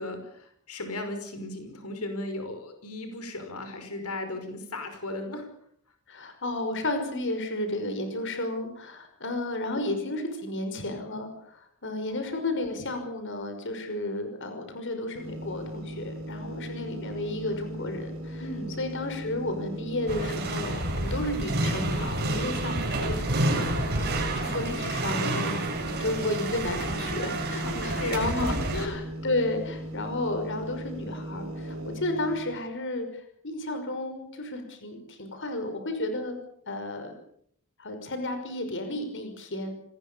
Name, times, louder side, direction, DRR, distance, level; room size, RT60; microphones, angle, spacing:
voice 1, 0.0-5.5 12.1-12.5 18.4-18.7 22.6-22.9 27.6-29.0, left 2 dB, 85° left, 7 dB, 5.5 m, -36 dB
voice 2, 6.1-18.5 18.8-23.6 23.9-25.6 25.8-36.4 36.7-37.1 37.8-39.7, left 2 dB, 55° left, 7 dB, 5.6 m, -32 dB
sound 1, 15.1-32.4, right 1 dB, 65° right, 5.5 m, -38 dB
sound 2, 20.1-28.9, right 2 dB, 50° right, 7.9 m, -29 dB
27.5 x 20.5 x 7.0 m, 0.67 s
head